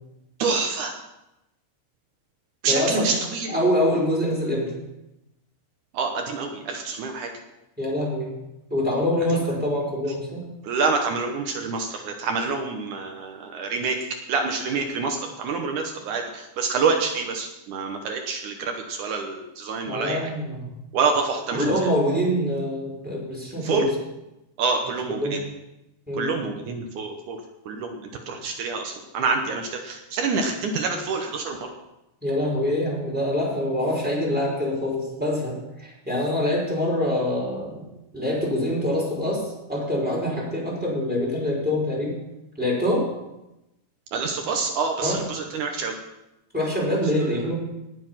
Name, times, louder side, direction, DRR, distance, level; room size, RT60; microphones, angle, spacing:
voice 1, 0.4-0.9 2.6-3.6 5.9-7.3 9.3-9.4 10.6-14.0 14.3-20.2 20.9-21.9 23.6-23.9 24.6-25.4 26.2-27.4 27.7-28.0 28.3-31.6 44.1-46.0, right 4 dB, 90° right, 3 dB, 1.7 m, -27 dB
voice 2, 2.7-3.1 3.5-4.7 7.8-8.3 8.7-10.4 19.8-20.7 21.5-23.9 25.2-25.4 26.1-26.4 32.2-37.8 38.1-42.1 42.6-43.1 45.0-45.2 46.5-47.5, left 1 dB, ahead, -4 dB, 4.5 m, -25 dB
18.5 x 7.2 x 5.8 m, 0.93 s
omnidirectional pair, 5.2 m